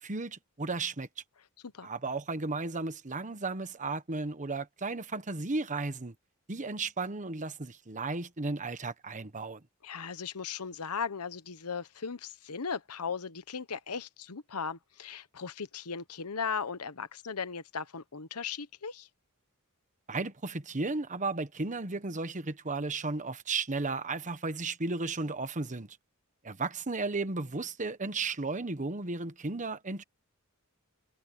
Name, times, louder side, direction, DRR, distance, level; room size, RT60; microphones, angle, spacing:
voice 1, 0.0-1.1 1.8-6.1 6.5-9.6 20.1-26.0 26.4-30.0, right 3 dB, 35° right, 1.2 m, -34 dB
voice 2, 9.8-19.1, left 6 dB, 85° left, 1.1 m, -37 dB
head